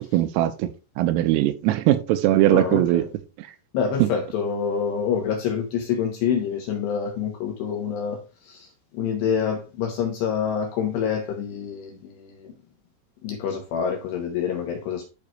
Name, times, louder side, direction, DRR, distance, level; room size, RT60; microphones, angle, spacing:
voice 1, 0.1-3.0 4.0-4.1, right 14 dB, 85° right, 3.2 m, -20 dB
voice 2, 2.5-3.1 3.7-12.5 13.2-15.1, left 7 dB, 80° left, 2.6 m, -27 dB
12.0 x 4.6 x 2.4 m
omnidirectional pair, 5.9 m